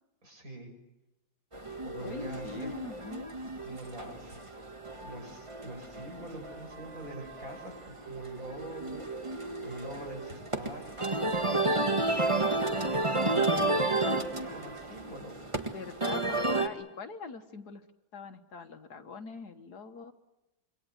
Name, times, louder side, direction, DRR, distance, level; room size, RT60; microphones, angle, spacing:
voice 1, 0.2-0.7 1.8-2.7 3.6-4.4 5.0-7.7 8.0-9.0 9.6-10.9 13.3-15.4, right 1 dB, 45° right, 3 dB, 7.5 m, -44 dB
sound 1, 1.5-16.7, right 2 dB, 15° right, 1.6 m, -32 dB
voice 2, 2.0-3.3 12.1-12.4 15.7-17.8 18.1-20.1, left 4 dB, 60° left, 7 dB, 1.8 m, -43 dB
26.5 x 25.5 x 8.0 m, 0.97 s
omnidirectional pair, 2.0 m